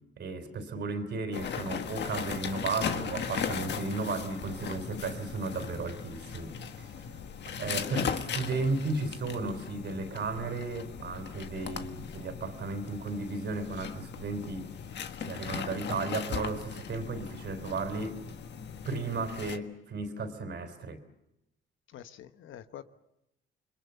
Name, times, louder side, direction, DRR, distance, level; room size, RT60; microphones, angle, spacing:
voice 1, 0.2-7.1 7.5-14.7 15.2-18.2 18.8-21.0, right 3 dB, 60° right, 3.6 m, -34 dB
sound 1, 1.3-19.6, left 7 dB, 60° left, 1.6 m, -38 dB
voice 2, 21.9-22.8, left 10 dB, 75° left, 1.2 m, -46 dB
29.0 x 22.5 x 7.0 m
cardioid pair, 90°, 20 cm